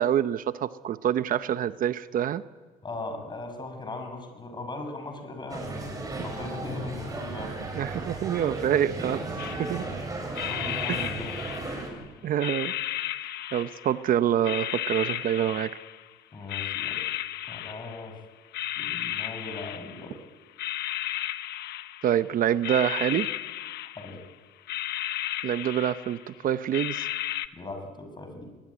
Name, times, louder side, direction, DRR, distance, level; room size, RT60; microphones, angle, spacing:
voice 1, 0.0-2.4 7.7-9.2 9.6-9.8 10.9-11.0 12.2-12.7 13.5-15.7 22.0-23.3 25.4-27.1, right 10 dB, 55° right, 12 dB, 0.8 m, -26 dB
voice 2, 2.8-5.9 6.2-7.6 10.5-11.4 16.3-17.1 17.5-18.2 18.8-20.2 23.9-24.2 27.5-28.5, left 2 dB, 25° left, 6 dB, 6.4 m, -38 dB
sound 1, 5.5-11.9, right 2 dB, 20° right, 7.2 m, -35 dB
sound 2, 9.4-9.9 10.3-12.0 12.4-14.1 14.4-16.1 16.5-18.2 18.5-20.2 20.6-22.2 22.6-24.3 24.7-26.3 26.7-27.5, left 13 dB, 75° left, 0.9 m, -34 dB
22.5 x 20.5 x 9.8 m, 1.3 s
cardioid pair, 110°, 17 cm